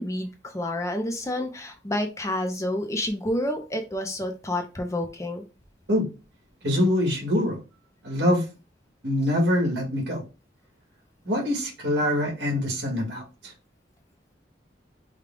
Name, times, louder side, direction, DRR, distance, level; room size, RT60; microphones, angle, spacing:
voice 1, 0.0-5.4, left 1 dB, 15° left, 0.6 m, -29 dB
voice 2, 6.6-7.6 8.0-8.5 9.0-10.2 11.3-13.5, left 1 dB, 80° right, 2.0 m, -24 dB
5.0 x 2.3 x 3.6 m
head